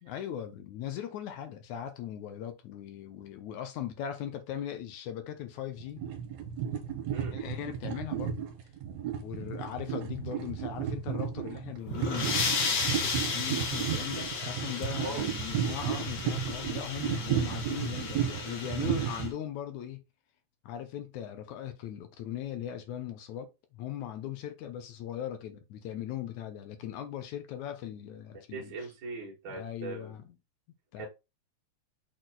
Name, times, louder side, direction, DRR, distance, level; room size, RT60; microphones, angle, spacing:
voice 1, 0.0-6.0 7.3-8.4 9.2-20.0 20.6-28.7 29.5-30.3 30.9-31.1, left 10 dB, 75° left, 2.2 m, -39 dB
sound 1, 5.8-19.3, right 9 dB, 70° right, 2.5 m, -33 dB
sound 2, 11.8-19.3, left 5 dB, 50° left, 1.9 m, -34 dB
voice 2, 14.9-15.3 28.5-30.1 31.0-31.1, right 3 dB, 40° right, 2.4 m, -40 dB
6.3 x 4.2 x 3.9 m
omnidirectional pair, 3.5 m